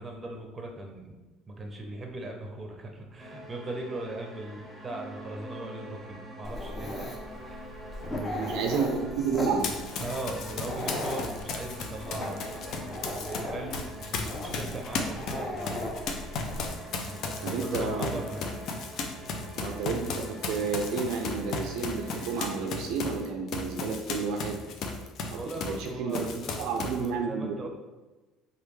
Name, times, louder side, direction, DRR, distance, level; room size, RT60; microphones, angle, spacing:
voice 1, 0.0-7.1 7.5-7.6 8.1-8.7 10.0-15.8 17.0-18.6 25.3-27.7, right 2 dB, 25° right, 2 dB, 0.6 m, -39 dB
sound 1, 3.2-22.6, right 1 dB, ahead, 0.9 m, -46 dB
Dog, 6.4-16.7, left 1 dB, 25° left, 0.7 m, -38 dB
voice 2, 8.3-10.0 17.4-18.1 19.6-24.6 25.3-25.4 25.7-26.2 26.6-27.7, right 5 dB, 75° right, 3 dB, 0.4 m, -31 dB
Run, 9.6-13.4 13.7-25.9 26.1-27.1, left 4 dB, 60° left, 0.4 m, -35 dB
3.2 x 2.3 x 3.1 m, 1.2 s
supercardioid pair, 95°, 0 cm